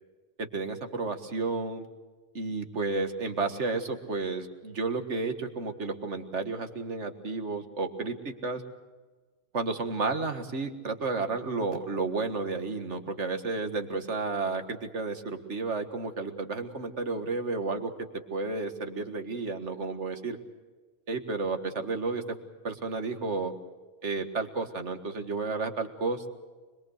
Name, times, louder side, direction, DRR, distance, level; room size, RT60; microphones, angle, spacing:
voice 1, 0.4-1.9 2.3-8.6 9.5-17.9 18.3-20.4 21.1-22.4 22.6-23.5 24.0-26.3, right 3 dB, 85° right, 6 dB, 2.1 m, -32 dB
25.5 x 22.0 x 6.6 m, 1.3 s
omnidirectional pair, 1.2 m